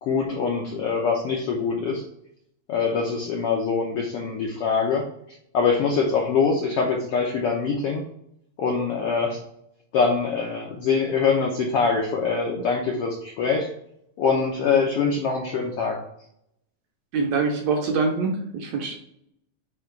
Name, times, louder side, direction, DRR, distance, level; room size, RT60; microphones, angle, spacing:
voice 1, 0.0-2.0 2.7-5.1 5.5-8.1 8.6-9.4 9.9-13.7 14.2-16.0, left 5 dB, 75° left, 0 dB, 1.3 m, -24 dB
voice 2, 17.1-19.0, right 4 dB, 70° right, 2 dB, 1.7 m, -24 dB
8.8 x 3.0 x 4.6 m, 0.75 s
omnidirectional pair, 3.7 m